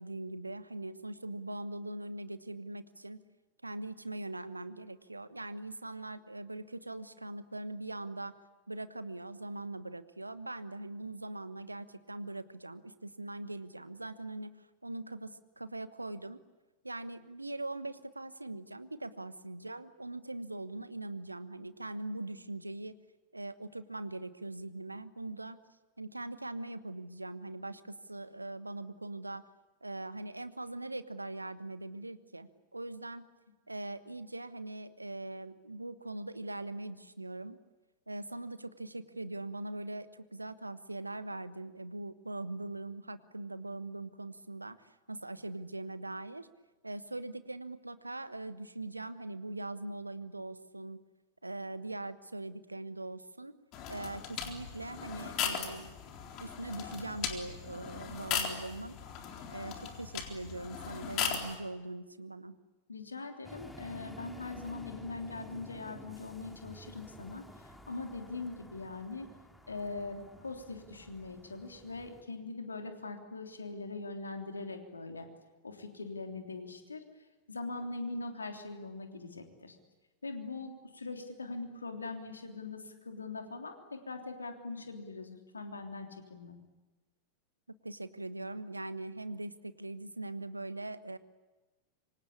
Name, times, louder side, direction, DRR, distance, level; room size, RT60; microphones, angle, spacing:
voice 1, 0.0-3.2 3.6-8.3 8.7-16.4 16.8-22.9 23.3-25.6 26.0-29.4 29.8-33.3 33.7-37.6 38.1-46.5 46.8-51.0 51.4-53.6 53.9-55.9 56.4-59.0 59.5-62.5 87.7-91.2, right 2 dB, 85° right, 13 dB, 1.2 m, -41 dB
sound 1, 53.7-61.6, left 8 dB, 40° left, 3.9 m, -38 dB
voice 2, 62.9-69.3 69.7-75.3 75.6-77.0 77.5-79.7 80.2-86.6, left 3 dB, 75° left, 4 dB, 3.3 m, -42 dB
sound 2, 63.4-72.2, left 1 dB, 5° left, 2.7 m, -52 dB
27.0 x 25.0 x 8.6 m, 1.2 s
figure-of-eight pair, 90°, 0 cm